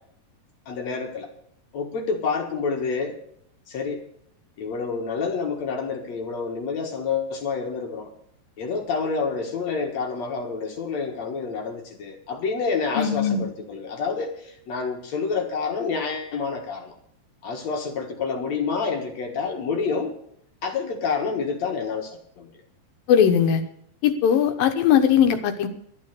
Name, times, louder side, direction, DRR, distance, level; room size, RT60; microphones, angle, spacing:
voice 1, 0.7-1.3 1.7-3.2 3.7-4.0 4.6-8.1 8.6-17.0 17.4-20.1 20.6-22.5, left 5 dB, 55° left, 3 dB, 2.3 m, -28 dB
voice 2, 13.0-13.5 23.1-23.6 24.0-25.7, left 8 dB, 70° left, 7 dB, 2.5 m, -19 dB
13.0 x 9.3 x 7.0 m, 0.67 s
omnidirectional pair, 4.8 m